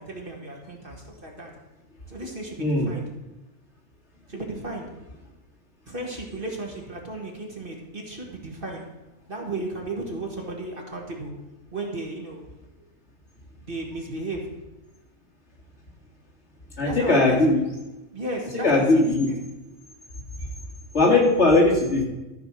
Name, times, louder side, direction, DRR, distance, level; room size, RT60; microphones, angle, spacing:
voice 1, 0.0-1.5 2.1-3.1 4.3-4.9 5.9-8.8 9.3-11.3 11.7-12.4 13.6-14.5 16.8-17.4 18.1-19.4, right 2 dB, 40° right, 0 dB, 1.8 m, -34 dB
voice 2, 2.6-2.9 16.8-17.6 18.6-19.3 20.9-22.0, left 2 dB, 50° left, -2 dB, 2.5 m, -19 dB
13.5 x 5.1 x 6.2 m, 1.0 s
omnidirectional pair, 1.5 m